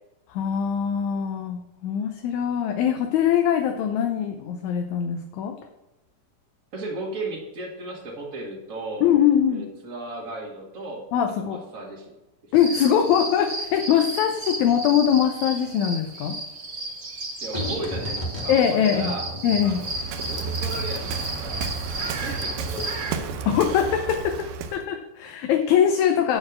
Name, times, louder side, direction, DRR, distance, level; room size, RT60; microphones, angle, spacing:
voice 1, 0.3-5.6 9.0-9.7 11.1-11.6 12.5-16.4 18.5-19.1 19.4-19.8 23.5-26.4, left 9 dB, 75° left, 5 dB, 1.9 m, -22 dB
voice 2, 6.7-9.1 9.5-11.1 11.4-12.1 12.4-12.5 17.4-19.3 19.6-19.9 20.3-23.6, right 2 dB, 30° right, -1 dB, 1.8 m, -36 dB
sound 1, 12.5-23.1, right 2 dB, 60° right, 0.6 m, -33 dB
sound 2, 17.5-22.4 22.7-22.8, equal, 50° left, 0.5 m, -36 dB
Waves surf, 19.6-24.9, right 5 dB, 80° right, 2.3 m, -32 dB
9.6 x 4.4 x 7.1 m, 1.0 s
omnidirectional pair, 3.7 m